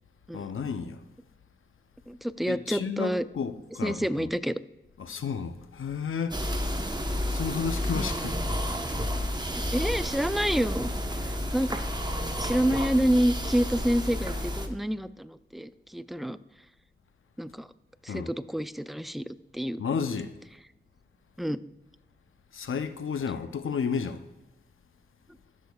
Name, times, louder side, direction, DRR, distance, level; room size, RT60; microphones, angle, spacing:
voice 1, 0.3-1.0 2.5-4.3 5.0-6.5 7.3-8.4 18.1-18.3 19.8-20.3 22.5-24.2, left 6 dB, 80° left, 0.6 m, -32 dB
voice 2, 2.1-3.2 3.8-4.5 7.9-8.3 9.7-10.9 11.2-11.8 12.4-16.4 17.4-17.7 18.0-19.8 21.4-21.6, equal, ahead, 0.4 m, -28 dB
sound 1, 6.3-14.7, equal, 20° right, 1.0 m, -31 dB
15.0 x 6.5 x 2.3 m
cardioid pair, 50°, 21 cm